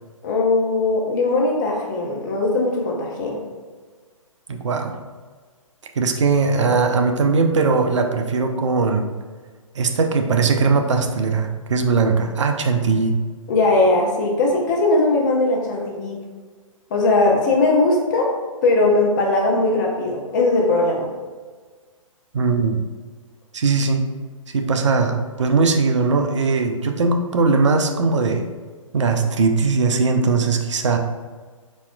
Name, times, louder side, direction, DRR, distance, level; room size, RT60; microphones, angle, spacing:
voice 1, 0.2-3.4 13.5-16.2 16.9-18.3 18.6-21.1, left 2 dB, 35° left, -1 dB, 0.8 m, -19 dB
voice 2, 4.5-5.0 6.0-9.1 9.8-13.2 22.3-22.8 23.5-24.1 24.5-28.4 28.9-31.0, right 4 dB, 60° right, 5 dB, 0.5 m, -19 dB
4.2 x 4.1 x 2.3 m, 1.5 s
figure-of-eight pair, 125°, 18 cm